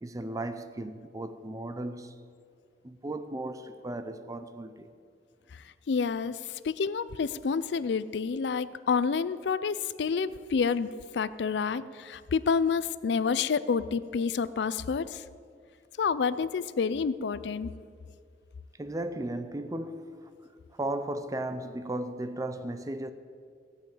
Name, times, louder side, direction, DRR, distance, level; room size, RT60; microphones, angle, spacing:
voice 1, 0.0-2.2 2.8-4.9 18.8-20.3 20.7-23.1, right 1 dB, 20° right, 0.5 m, -35 dB
voice 2, 5.5-15.2 16.0-17.7, left 5 dB, 70° left, 0.4 m, -29 dB
16.5 x 5.7 x 8.6 m
head